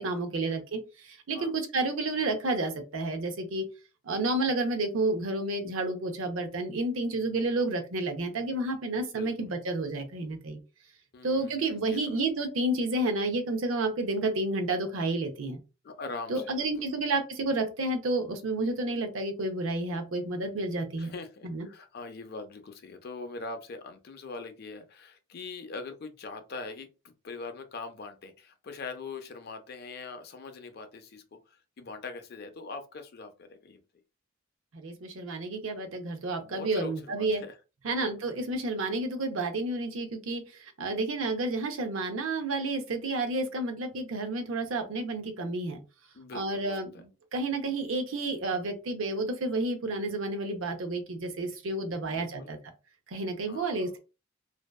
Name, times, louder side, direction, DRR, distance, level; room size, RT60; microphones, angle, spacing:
voice 1, 0.0-3.6 4.0-10.6 11.2-15.6 16.3-21.1 21.4-21.7 34.7-37.4 37.8-45.8 46.3-46.9 47.3-52.6 53.1-54.0, right 2 dB, 75° right, 6 dB, 0.6 m, -30 dB
voice 2, 11.1-12.2 15.8-16.9 21.0-33.8 36.4-37.5 38.0-38.1 46.1-46.8 52.0-52.5 53.5-53.9, left 3 dB, 50° left, 7 dB, 0.4 m, -42 dB
2.6 x 2.2 x 2.2 m, 0.30 s
head